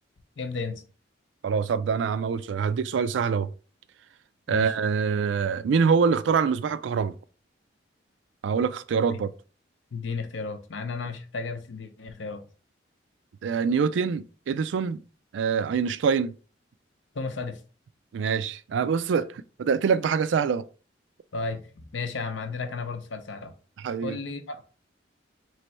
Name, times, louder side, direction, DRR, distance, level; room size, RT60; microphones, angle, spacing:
voice 1, 0.4-0.8 4.5-4.7 9.9-12.4 17.1-17.6 21.3-23.5 24.0-24.6, left 4 dB, 85° left, 0.7 m, -33 dB
voice 2, 1.4-3.5 4.5-7.1 8.4-9.3 13.4-15.0 15.3-16.3 18.1-20.6 23.8-24.2, right 6 dB, 75° right, 0.3 m, -25 dB
3.2 x 3.0 x 4.3 m
head